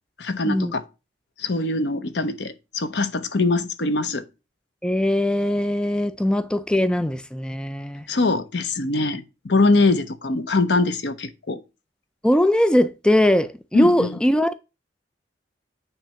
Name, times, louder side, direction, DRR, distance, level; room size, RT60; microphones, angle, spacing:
voice 1, 0.2-0.8 1.4-4.2 8.1-11.6 13.7-14.2, left 3 dB, 70° left, 0.8 m, -23 dB
voice 2, 4.8-8.1 12.2-14.5, left 1 dB, 5° left, 0.4 m, -20 dB
9.0 x 3.3 x 5.7 m
head